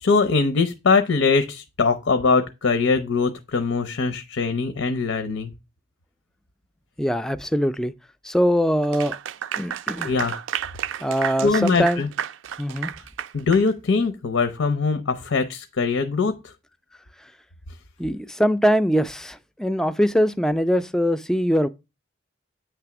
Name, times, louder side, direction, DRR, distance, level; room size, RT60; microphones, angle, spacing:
voice 1, 0.0-5.5 10.0-10.4 11.4-12.1 13.3-16.4, left 4 dB, 90° left, 0.7 m, -22 dB
voice 2, 7.0-7.9 8.2-9.2 9.6-10.1 11.0-12.0 12.6-12.9 18.0-21.7, equal, 5° left, 0.3 m, -22 dB
Clapping / Applause, 8.8-13.7, right 9 dB, 80° right, 0.4 m, -31 dB
8.8 x 3.4 x 5.9 m
head